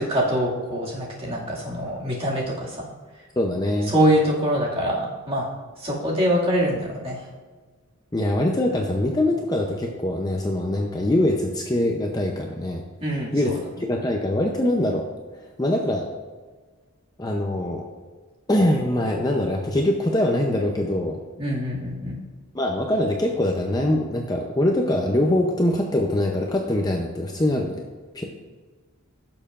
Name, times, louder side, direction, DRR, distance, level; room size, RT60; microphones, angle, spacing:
voice 1, 0.0-2.9 3.9-5.4 5.8-7.2 13.0-13.6 21.4-22.2, equal, 25° right, -5 dB, 2.2 m, -24 dB
voice 2, 3.4-3.9 8.1-12.8 13.3-15.1 15.6-16.1 17.2-17.9 18.5-21.2 22.5-27.8 28.1-28.2, left 1 dB, 20° left, 1 dB, 0.6 m, -23 dB
16.5 x 6.7 x 2.5 m, 1.4 s
head